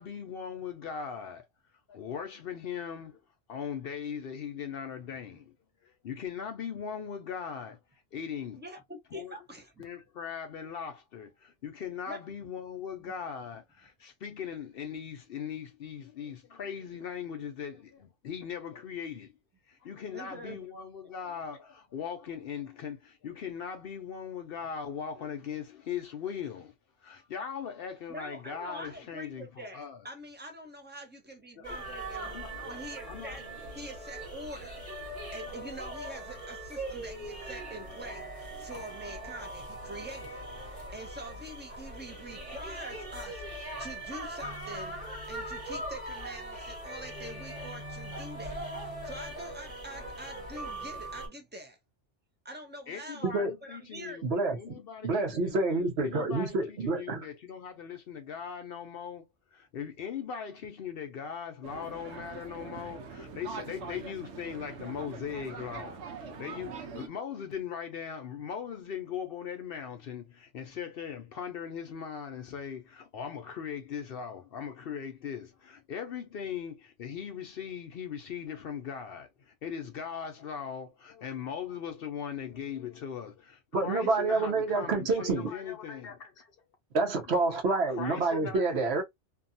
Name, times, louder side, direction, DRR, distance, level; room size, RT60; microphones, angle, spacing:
voice 1, 0.0-1.5 1.9-3.2 3.5-5.5 5.8-7.8 8.1-8.6 9.1-9.4 9.8-19.3 19.7-26.7 27.0-30.0 31.6-31.7 32.3-32.6 33.1-33.4 52.9-59.2 59.5-86.5 87.9-88.6, left 7 dB, 60° left, 0.7 m, -39 dB
voice 2, 8.6-9.8 12.1-12.2 20.1-20.6 21.0-21.1 28.1-32.4 32.6-33.5 33.7-34.8 35.3-45.0 45.3-51.8 52.4-53.3 53.6-54.2, right 1 dB, 10° right, 0.5 m, -45 dB
sound 1, 31.6-51.3, right 1 dB, 40° right, 1.3 m, -40 dB
voice 3, 54.2-54.7 55.0-57.3 83.7-85.5 86.9-89.0, right 3 dB, 65° right, 1.0 m, -28 dB
sound 2, 61.6-67.1, right 5 dB, 85° right, 1.0 m, -43 dB
2.7 x 2.3 x 2.5 m
omnidirectional pair, 1.2 m